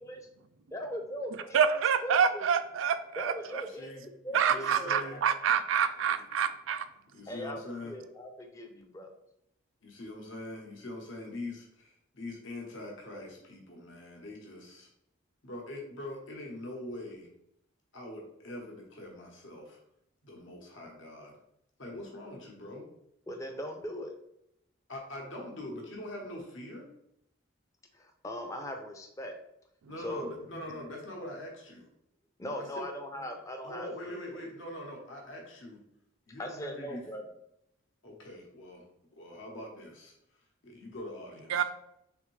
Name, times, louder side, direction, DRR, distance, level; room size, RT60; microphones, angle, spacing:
voice 1, 0.7-1.6 2.0-2.5 3.2-5.2 7.3-7.6 7.8-9.1 23.3-24.1 27.9-29.4 30.0-30.3 32.4-34.2 36.4-37.2, equal, 15° left, 4 dB, 0.4 m, -39 dB
voice 2, 1.5-3.3 4.3-6.9 41.5-41.6, right 7 dB, 75° right, 11 dB, 0.3 m, -27 dB
voice 3, 3.4-4.0 4.3-5.2 6.1-6.2 7.1-7.9 9.8-14.9 15.4-17.3 17.9-19.8 20.2-21.4 21.8-22.9 24.9-26.9 29.9-31.9 32.5-32.9 33.1-33.2 33.6-35.8 36.3-37.0 38.0-38.8 39.1-40.1 40.6-41.6, left 1 dB, 70° left, 0 dB, 1.0 m, -43 dB
3.5 x 3.4 x 3.1 m, 0.77 s
head